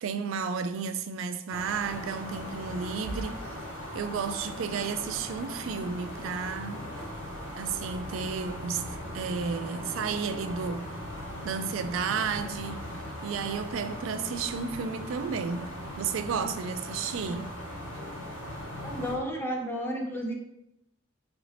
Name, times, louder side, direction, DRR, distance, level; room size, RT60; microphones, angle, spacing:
voice 1, 0.0-3.4 3.9-6.9 7.6-8.9 9.1-10.9 11.4-12.9 13.2-15.7 16.0-17.5, right 5 dB, 70° right, 0.3 m, -32 dB
sound 1, 1.5-19.2, equal, 75° left, 1.3 m, -39 dB
voice 2, 18.8-20.3, equal, 10° left, 0.5 m, -32 dB
4.9 x 2.6 x 3.2 m
head